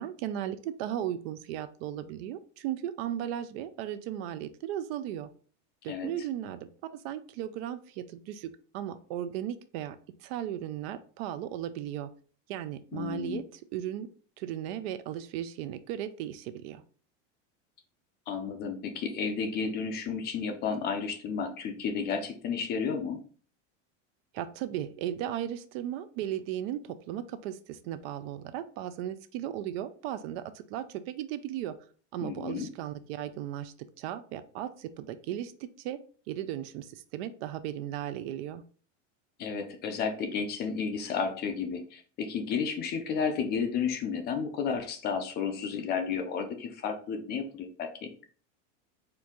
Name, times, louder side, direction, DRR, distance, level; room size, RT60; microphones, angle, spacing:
voice 1, 0.0-5.3 5.8-6.7 6.9-10.0 10.2-12.1 12.5-14.1 14.4-16.8 24.3-31.8 32.1-36.0 36.3-38.6, right 11 dB, 55° right, 12 dB, 0.5 m, -36 dB
voice 2, 12.9-13.5 18.3-23.2 32.2-32.7 39.4-48.1, left 6 dB, 30° left, 6 dB, 0.5 m, -32 dB
4.5 x 2.6 x 3.6 m, 0.42 s
supercardioid pair, 150°, 37 cm